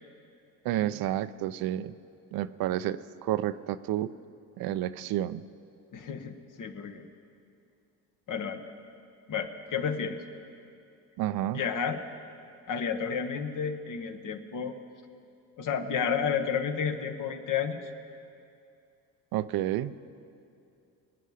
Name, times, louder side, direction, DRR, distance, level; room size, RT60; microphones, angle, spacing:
voice 1, 0.6-1.9 2.3-4.1 4.6-5.4 11.2-11.6 19.3-20.0, right 13 dB, 65° right, 14 dB, 0.6 m, -30 dB
voice 2, 5.9-7.0 8.3-8.6 9.3-10.2 11.5-12.0 12.7-14.7 15.6-17.8, left 7 dB, 55° left, 7 dB, 1.3 m, -31 dB
23.0 x 9.7 x 5.0 m, 2.5 s
supercardioid pair, 85°, 38 cm